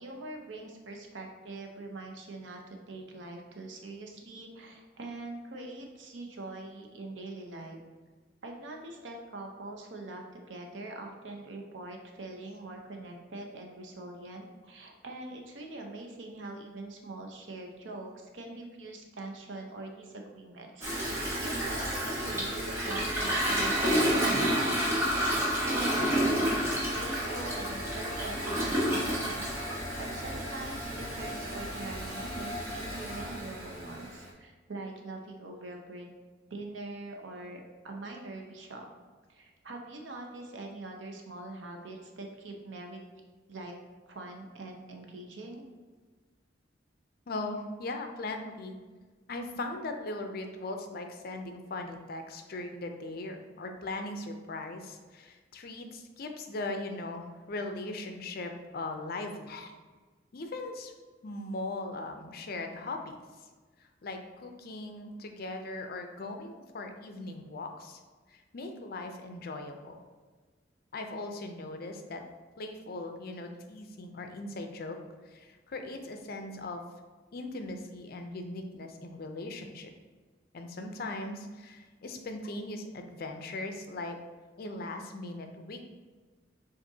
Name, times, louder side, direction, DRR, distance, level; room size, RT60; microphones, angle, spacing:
voice 1, 0.0-7.8 8.4-20.9 21.4-24.8 25.6-29.4 30.0-36.1 36.5-38.9 39.3-43.0 43.5-43.8 44.1-45.7, right 2 dB, 90° right, 2 dB, 0.7 m, -43 dB
Toilet flush, 20.8-34.2, equal, 15° right, 1.1 m, -30 dB
voice 2, 47.3-48.8 49.3-59.7 60.3-60.9 61.2-63.2 64.0-68.0 68.3-70.0 70.9-72.2 72.6-75.0 75.3-76.8 77.3-79.9 80.5-84.2 84.6-85.8, left 2 dB, 55° left, 5 dB, 0.5 m, -39 dB
7.1 x 2.5 x 2.7 m, 1.4 s
head